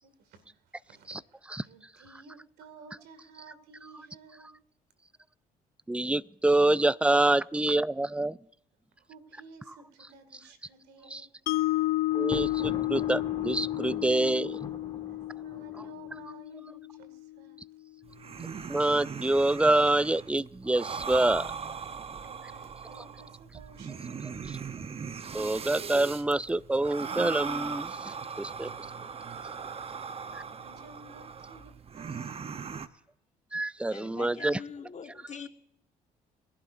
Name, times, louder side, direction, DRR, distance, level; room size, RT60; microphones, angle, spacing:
voice 1, 0.0-4.6 9.0-11.3 15.1-17.6 22.0-24.6 30.3-32.7, right 4 dB, 75° right, 10 dB, 2.2 m, -54 dB
voice 2, 5.9-8.4 11.1-11.2 12.1-14.6 18.7-21.5 25.3-28.7 30.3-30.4 33.5-34.6, right 2 dB, 5° right, 20 dB, 0.4 m, -26 dB
Mallet percussion, 11.5-17.6, left 17 dB, 70° left, 0.4 m, -32 dB
Thunder, 12.1-16.2, left 4 dB, 25° left, 2.8 m, -42 dB
sound 1, 18.0-32.9, right 6 dB, 35° right, 0.8 m, -39 dB
voice 3, 33.9-35.5, left 6 dB, 45° left, 7 dB, 1.5 m, -43 dB
23.0 x 11.5 x 2.6 m, 0.75 s
supercardioid pair, 70°, 17 cm